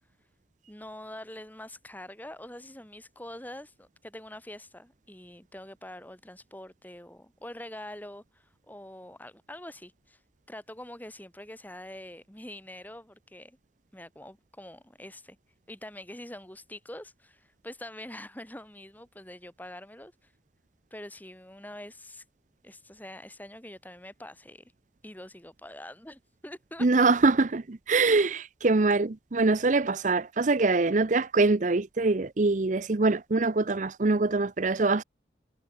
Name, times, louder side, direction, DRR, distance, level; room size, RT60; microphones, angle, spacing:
voice 1, 0.7-10.2 10.5-13.6 13.9-15.4 15.7-20.3 20.9-22.2 22.6-24.6 25.0-26.9, left 1 dB, 10° left, 4.0 m, -45 dB
voice 2, 26.8-35.0, right 3 dB, 45° right, 0.7 m, -24 dB
head